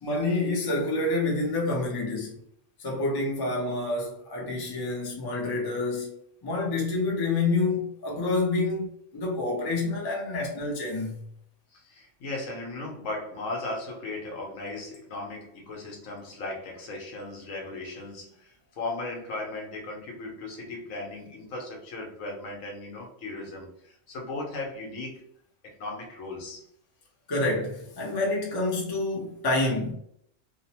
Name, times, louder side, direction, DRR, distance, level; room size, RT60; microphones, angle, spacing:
voice 1, 0.0-2.3 2.8-6.1 6.4-11.2 27.3-29.9, left 2 dB, 25° left, 0.5 m, -28 dB
voice 2, 11.7-25.2 25.6-26.7, left 2 dB, 75° left, 1.2 m, -37 dB
2.9 x 2.1 x 2.8 m
omnidirectional pair, 1.4 m